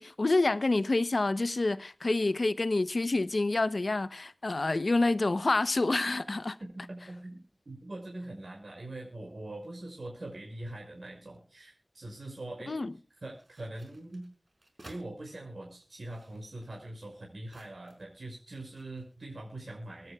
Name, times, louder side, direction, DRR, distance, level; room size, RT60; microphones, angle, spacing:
voice 1, 0.0-6.6 12.7-12.9, left 2 dB, 75° left, 0.9 m, -28 dB
voice 2, 6.6-12.7 13.2-14.3 14.9-20.1, right 1 dB, 80° right, 6.1 m, -43 dB
sound 1, 13.3-15.1 15.8-18.2 18.5-19.2, right 1 dB, 60° right, 4.7 m, -57 dB
24.5 x 10.5 x 2.4 m
wide cardioid pair, 55°, 0 cm